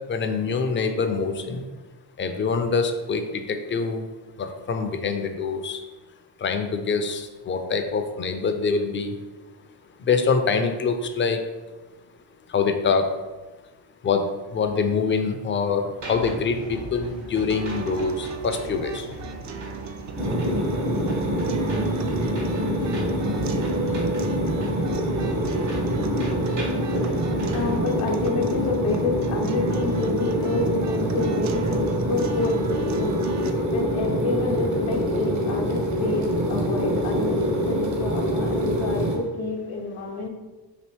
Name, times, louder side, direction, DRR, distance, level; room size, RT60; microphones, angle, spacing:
voice 1, 0.1-1.7 2.2-4.1 4.4-5.8 6.4-9.1 10.0-11.4 12.5-13.1 14.0-14.2 14.5-15.8 16.1-19.1, left 5 dB, 25° left, 7 dB, 0.3 m, -25 dB
sound 1, 16.0-27.8, equal, 85° right, 1.2 m, -37 dB
sound 2, 17.5-33.5, right 6 dB, 40° right, 0.4 m, -35 dB
sound 3, 20.2-39.2, equal, 60° right, 1.0 m, -25 dB
voice 2, 27.5-33.2 33.7-40.3, left 4 dB, 80° left, 0 dB, 0.7 m, -28 dB
3.0 x 2.6 x 3.0 m, 1.2 s
hypercardioid pair, 45°, 48 cm